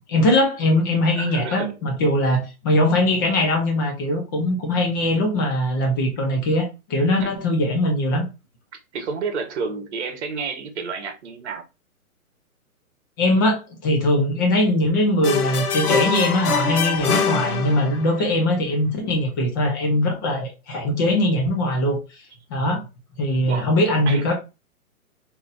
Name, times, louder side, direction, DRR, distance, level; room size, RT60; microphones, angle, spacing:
voice 1, 0.1-8.3 13.2-22.0 22.5-22.8 23.2-24.3, left 1 dB, 15° left, 0.5 m, -21 dB
voice 2, 1.1-1.7 7.2-7.4 8.9-11.6 17.1-17.2 18.2-18.4 23.5-23.7 24.1-24.3, right 5 dB, 50° right, 1.1 m, -30 dB
sound 1, 15.2-18.2, left 5 dB, 80° left, 0.9 m, -23 dB
3.7 x 2.9 x 2.5 m
hypercardioid pair, 140°, 44 cm